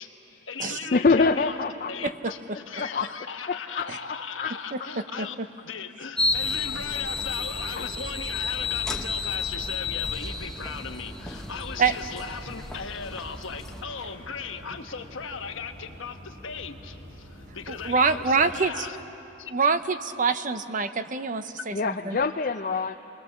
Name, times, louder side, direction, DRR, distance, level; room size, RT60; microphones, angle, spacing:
voice 1, 0.0-1.6 1.9-5.4 5.6-19.0 19.4-19.5, left 6 dB, 70° left, 6 dB, 1.2 m, -38 dB
voice 2, 0.9-1.9 2.7-3.1 3.5-3.9 4.4-4.5 7.8-7.9 21.7-22.9, left 4 dB, 40° left, 7 dB, 0.5 m, -25 dB
sound 1, 6.2-13.8, left 4 dB, 5° left, 0.8 m, -31 dB
sound 2, 6.4-18.7, equal, 80° right, 5.0 m, -45 dB
voice 3, 17.7-18.9 19.5-22.2, right 5 dB, 40° right, 10 dB, 0.7 m, -25 dB
29.5 x 21.0 x 7.2 m, 3.0 s
head